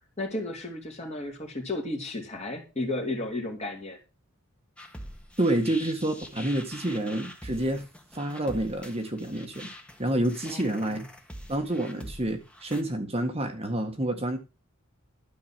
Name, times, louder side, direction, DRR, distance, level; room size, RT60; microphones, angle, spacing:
voice 1, 0.2-4.0 10.5-11.0, left 2 dB, 30° left, 1 dB, 3.0 m, -33 dB
sound 1, 4.8-12.8, equal, 5° left, 1.4 m, -44 dB
voice 2, 5.4-7.8 8.1-9.7 10.0-11.0 11.5-14.4, right 1 dB, 30° right, 4 dB, 1.6 m, -28 dB
12.0 x 4.9 x 7.5 m, 0.29 s
head